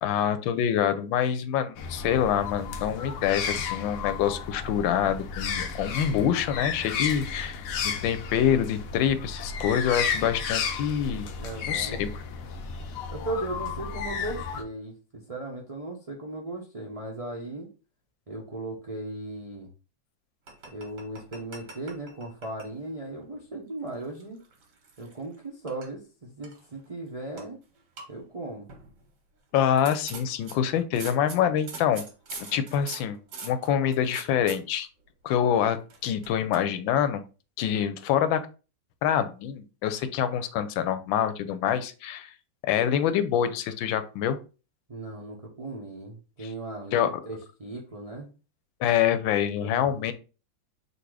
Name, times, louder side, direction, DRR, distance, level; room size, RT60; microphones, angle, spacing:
voice 1, 0.0-11.3 11.6-12.2 29.5-32.0 32.5-34.9 35.2-37.2 37.6-38.4 39.0-42.3 42.7-44.4 46.9-47.1 48.8-50.1, left 9 dB, 90° left, 11 dB, 1.4 m, -26 dB
sound 1, 1.8-14.6, left 6 dB, 70° left, 0.8 m, -33 dB
voice 2, 11.4-12.0 13.1-17.7 18.3-19.7 20.7-24.4 25.0-27.6 28.1-28.7 44.9-48.3 49.6-50.1, right 2 dB, 50° right, -2 dB, 0.4 m, -37 dB
sound 2, 20.5-22.7 23.0-23.3 23.9-25.4 25.7-25.9 26.4-26.9 27.4-27.5 27.8-28.1 28.7-29.0 29.7-34.6 35.9-36.6, right 4 dB, 65° right, 1.8 m, -43 dB
3.9 x 2.7 x 4.6 m, 0.33 s
omnidirectional pair, 2.0 m